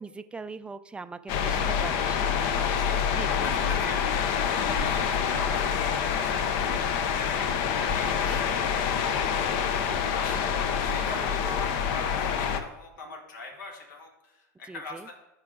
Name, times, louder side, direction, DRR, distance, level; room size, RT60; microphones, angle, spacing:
voice 1, 0.0-2.6 3.2-3.5 8.0-8.4 11.2-11.6 14.7-15.1, right 4 dB, 10° right, 11 dB, 0.4 m, -41 dB
sound 1, 1.3-12.6, left 7 dB, 55° left, 0.8 m, -27 dB
voice 2, 2.7-10.5 10.8-15.1, left 3 dB, 75° left, 1 dB, 2.3 m, -42 dB
13.5 x 4.8 x 3.7 m, 0.92 s
hypercardioid pair, 105°, 10 cm